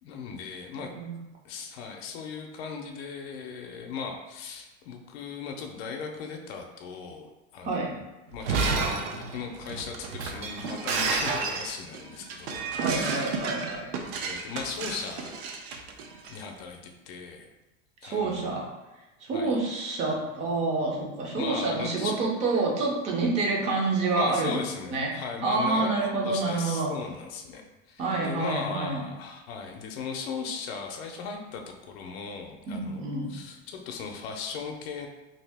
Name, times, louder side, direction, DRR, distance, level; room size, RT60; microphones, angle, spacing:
voice 1, 0.0-0.9 1.4-13.3 14.2-15.4 16.2-17.5 18.0-18.6 19.3-19.6 21.3-22.2 24.1-35.1, left 5 dB, 70° left, 3 dB, 0.5 m, -37 dB
voice 2, 0.8-1.2 7.6-8.0 12.8-13.9 18.0-18.7 19.2-24.5 24.9-25.1 25.4-26.9 28.0-29.1 32.7-33.3, right 3 dB, 20° right, -1 dB, 0.4 m, -28 dB
Shatter, 8.3-16.4, right 4 dB, 75° right, 0.6 m, -31 dB
2.7 x 2.7 x 3.4 m, 1.1 s
supercardioid pair, 170°, 32 cm